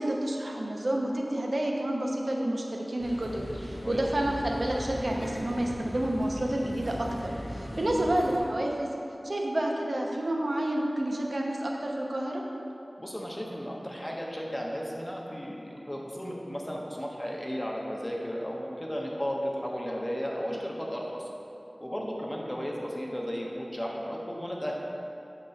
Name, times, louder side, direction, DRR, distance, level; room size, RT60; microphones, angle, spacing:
voice 1, 0.0-8.9 9.2-12.4, right 1 dB, 70° right, 0 dB, 0.9 m, -29 dB
sound 1, 3.0-8.4, equal, 65° left, 1.0 m, -39 dB
voice 2, 13.0-21.3 21.8-24.7, equal, 20° left, -2 dB, 1.2 m, -34 dB
8.3 x 3.1 x 6.4 m, 2.8 s
wide cardioid pair, 45°, 0 cm